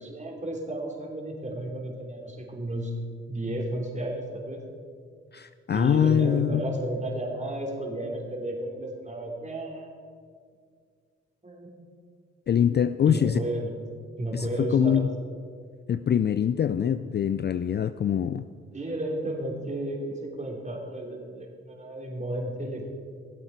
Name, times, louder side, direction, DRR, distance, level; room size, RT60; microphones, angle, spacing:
voice 1, 0.0-2.9 3.3-4.6 5.7-9.9 11.4-11.7 13.0-13.7 14.2-15.0 18.7-22.9, right 1 dB, 25° right, 0 dB, 2.9 m, -33 dB
voice 2, 5.3-6.7 12.5-13.4 14.3-15.1 15.9-18.4, left 8 dB, 35° left, 13 dB, 0.4 m, -24 dB
16.5 x 7.9 x 4.7 m, 2.1 s
hypercardioid pair, 40°, 30 cm